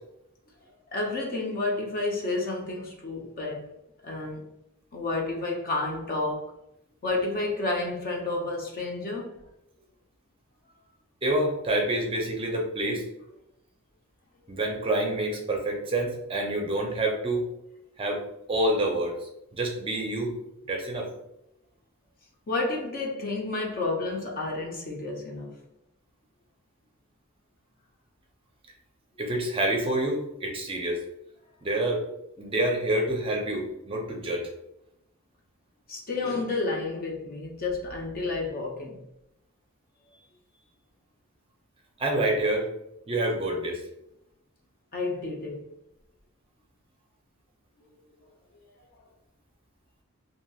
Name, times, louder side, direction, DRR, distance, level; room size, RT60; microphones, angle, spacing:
voice 1, 0.9-3.7 4.0-4.5 4.9-6.6 7.0-9.4 22.5-25.6 35.9-39.0 44.9-45.7, left 2 dB, 40° left, 0.5 m, -30 dB
voice 2, 11.2-13.0 14.5-17.5 18.0-18.2 18.5-20.3 20.7-21.1 29.2-31.0 31.6-32.0 32.4-34.5 42.0-42.7 43.1-43.8, right 1 dB, 25° right, 0.5 m, -27 dB
2.8 x 2.6 x 2.3 m
head